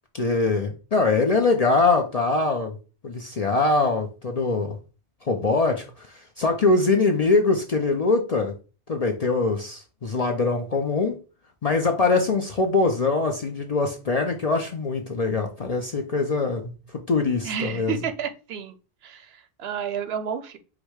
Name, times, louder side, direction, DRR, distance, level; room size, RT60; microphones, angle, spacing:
voice 1, 0.1-2.8 3.0-4.8 5.2-8.5 8.9-11.2 11.6-17.9, left 3 dB, 45° left, 3 dB, 0.5 m, -23 dB
voice 2, 17.4-18.8 19.0-20.6, right 7 dB, 65° right, 9 dB, 0.8 m, -31 dB
4.9 x 2.1 x 4.6 m, 0.34 s
omnidirectional pair, 1.2 m